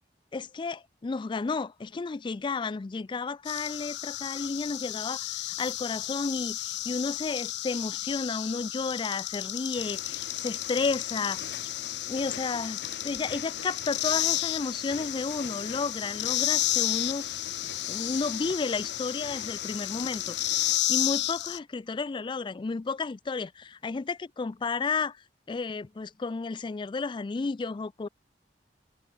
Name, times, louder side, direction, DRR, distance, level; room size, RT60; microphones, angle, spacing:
voice 1, 0.3-11.4 12.1-12.8 13.0-17.4 17.9-20.3 20.9-25.2 25.5-28.1, left 4 dB, 30° left, 0.3 m, -32 dB
sound 1, 3.5-21.6, left 15 dB, 85° left, 1.2 m, -32 dB
sound 2, 9.7-20.8, left 4 dB, 65° left, 2.6 m, -45 dB
head